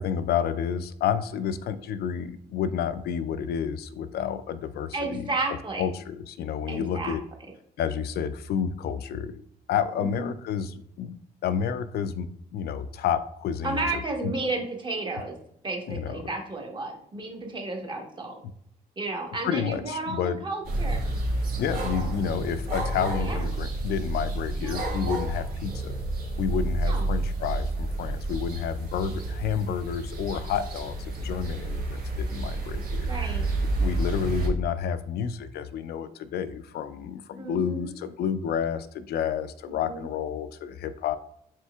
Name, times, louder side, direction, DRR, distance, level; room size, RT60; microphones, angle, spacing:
voice 1, 0.0-5.3 5.8-7.2 7.8-11.2 11.4-13.8 14.2-14.3 15.9-16.2 19.4-20.4 21.6-26.0 26.4-33.4 33.8-41.2, left 7 dB, 70° left, 12 dB, 0.4 m, -30 dB
voice 2, 4.9-5.8 6.7-7.2 10.1-10.3 13.6-15.4 15.6-18.3 19.0-21.0 23.2-23.5 24.6-24.9 26.9-27.0 33.1-33.5 37.4-37.9 39.7-40.1, right 3 dB, 30° right, 1 dB, 1.2 m, -32 dB
sound 1, 20.6-34.5, right 2 dB, 65° right, 1.5 m, -30 dB
4.3 x 4.3 x 2.3 m, 0.69 s
cardioid pair, 100°, 17 cm